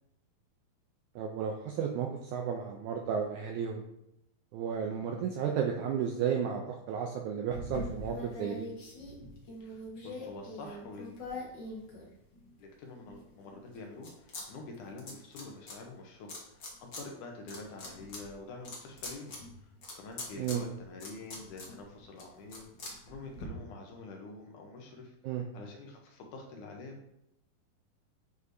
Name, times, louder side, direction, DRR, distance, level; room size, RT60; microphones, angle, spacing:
voice 1, 1.2-3.8 4.5-6.6 6.9-8.7 20.4-20.6 25.2-25.4, right 7 dB, 80° right, 2 dB, 1.7 m, -33 dB
sound 1, 7.5-12.5 13.1-14.4 14.7-15.7 16.3-17.0 17.4-23.5, left 2 dB, 55° left, 1.2 m, -43 dB
voice 2, 9.6-11.2 12.6-27.0, left 3 dB, 70° left, 1 dB, 2.1 m, -47 dB
8.1 x 4.9 x 2.6 m, 0.82 s
omnidirectional pair, 4.0 m